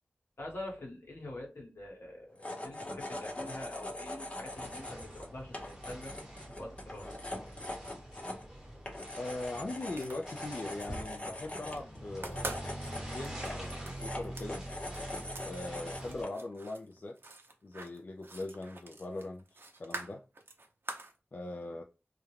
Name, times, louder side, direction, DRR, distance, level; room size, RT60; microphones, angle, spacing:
voice 1, 0.4-5.6 5.9-6.1 6.5-7.2, left 1 dB, 75° left, 1.1 m, -45 dB
sound 1, 2.3-16.4, left 1 dB, 30° left, 0.7 m, -43 dB
sound 2, 4.5-16.2, right 1 dB, 10° right, 1.0 m, -45 dB
voice 2, 9.2-12.5 13.0-14.6 15.4-17.4 17.6-19.4 19.8-20.2 21.3-21.8, left 2 dB, 50° left, 0.3 m, -40 dB
sound 3, 9.8-10.9 11.2-11.8 12.1-15.5 15.8-21.2, right 2 dB, 65° right, 0.6 m, -45 dB
2.4 x 2.2 x 3.1 m
wide cardioid pair, 75°, 4 cm